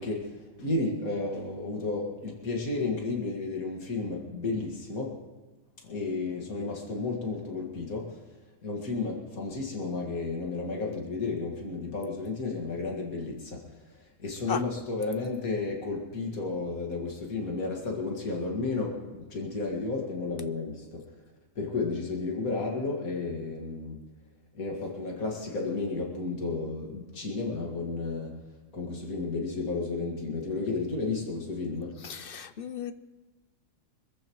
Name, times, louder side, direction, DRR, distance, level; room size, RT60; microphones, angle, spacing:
voice 1, 0.0-5.2 5.8-8.2 8.6-13.6 14.2-21.0 21.6-24.0 24.5-28.4 28.7-32.0, left 3 dB, 85° left, 2.5 m, -32 dB
voice 2, 32.0-32.9, left 7 dB, 55° left, 0.7 m, -35 dB
25.5 x 14.5 x 3.1 m
omnidirectional pair, 1.4 m